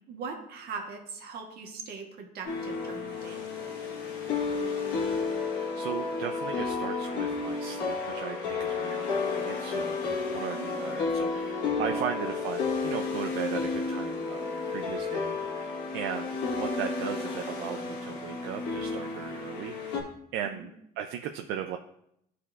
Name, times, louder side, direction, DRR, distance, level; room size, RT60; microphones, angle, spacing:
voice 1, 0.0-3.4 10.5-11.0 11.7-12.0 20.4-20.7, right 5 dB, 70° right, 2 dB, 1.4 m, -41 dB
sound 1, 2.5-20.0, left 4 dB, 85° left, 1.5 m, -32 dB
voice 2, 5.5-20.0 20.3-21.8, right 9 dB, 90° right, 5 dB, 0.4 m, -37 dB
11.0 x 4.2 x 2.4 m, 0.75 s
cardioid pair, 110°, 17 cm